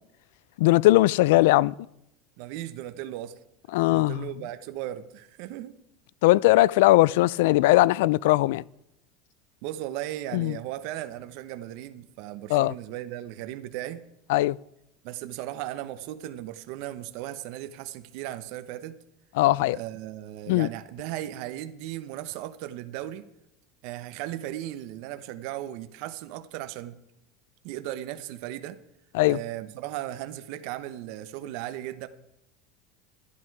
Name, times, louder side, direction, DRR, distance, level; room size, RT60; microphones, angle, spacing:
voice 1, 0.6-1.7 3.7-4.2 6.2-8.6 10.3-10.6 12.5-12.7 14.3-14.6 19.4-19.8 20.5-20.7 29.1-29.4, left 18 dB, 80° left, 0.3 m, -20 dB
voice 2, 2.4-3.4 3.9-5.7 9.6-14.0 15.0-19.0 19.7-23.3 23.8-27.0 27.6-28.8 29.2-32.1, right 13 dB, 60° right, 0.9 m, -36 dB
11.5 x 11.0 x 4.8 m
supercardioid pair, 145°, 0 cm